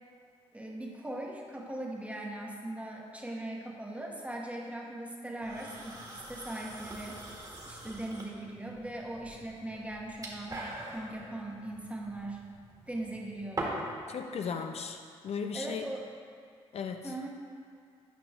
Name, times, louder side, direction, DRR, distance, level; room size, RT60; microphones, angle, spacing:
voice 1, 0.5-6.0 6.3-7.2 7.7-12.4 12.9-13.8 15.5-16.1 17.0-17.3, right 1 dB, 10° right, -1 dB, 1.4 m, -40 dB
sound 1, 5.4-14.0, right 1 dB, 30° right, 1.9 m, -43 dB
voice 2, 14.1-15.9 16.7-17.2, left 6 dB, 55° left, 6 dB, 0.5 m, -37 dB
9.7 x 5.2 x 3.6 m, 2.2 s
supercardioid pair, 50°, 12 cm